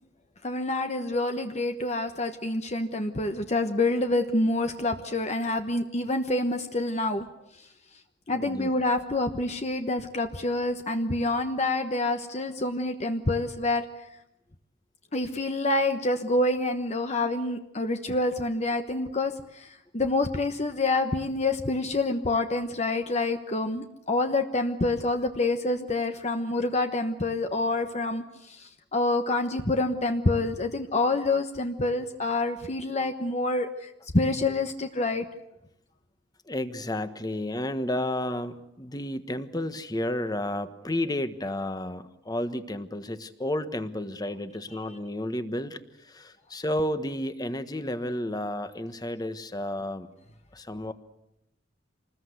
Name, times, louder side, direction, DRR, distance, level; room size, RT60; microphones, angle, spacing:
voice 1, 0.4-7.3 8.3-13.9 15.1-35.3, left 2 dB, 40° left, 6 dB, 1.2 m, -27 dB
voice 2, 8.4-8.7 36.5-50.1 50.5-50.9, left 1 dB, 20° left, 11 dB, 1.4 m, -32 dB
27.0 x 20.5 x 8.2 m, 0.82 s
head